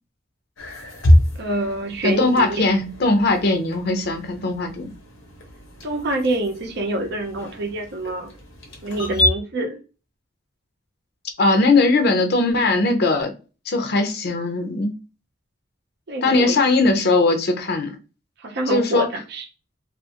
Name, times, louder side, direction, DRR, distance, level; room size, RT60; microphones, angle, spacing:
sound 1, 0.6-9.3, left 1 dB, 90° left, 0.9 m, -25 dB
voice 1, 1.4-2.6 5.8-8.3 8.8-9.8 16.1-16.6 18.4-19.4, right 1 dB, 60° right, 0.6 m, -26 dB
voice 2, 2.0-4.9 11.4-13.3 13.7-14.9 16.2-18.0 18.7-19.1, left 3 dB, 55° left, 0.5 m, -19 dB
2.4 x 2.4 x 2.8 m
head